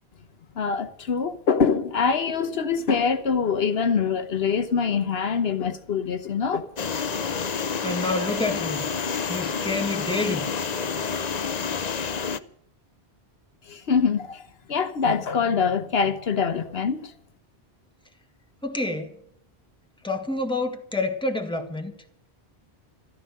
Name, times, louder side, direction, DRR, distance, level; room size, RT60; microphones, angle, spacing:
voice 1, 0.6-6.7 13.6-17.1, left 6 dB, 70° left, 1.2 m, -24 dB
sound 1, 6.8-12.4, left 6 dB, 45° left, 0.8 m, -28 dB
voice 2, 7.8-8.9 9.3-10.5 18.6-19.1 20.0-21.9, left 2 dB, 5° left, 1.7 m, -28 dB
14.0 x 13.5 x 6.5 m
omnidirectional pair, 1.1 m